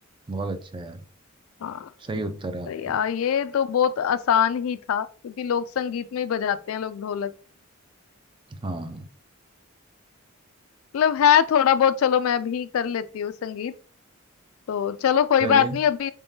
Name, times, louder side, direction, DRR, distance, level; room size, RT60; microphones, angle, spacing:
voice 1, 0.3-1.1 2.0-3.0 8.5-9.1 15.4-15.8, right 2 dB, 20° right, 0.4 m, -32 dB
voice 2, 1.6-2.2 2.7-7.3 10.9-13.7 14.7-16.1, left 8 dB, 70° left, 0.3 m, -23 dB
3.9 x 3.5 x 2.7 m
head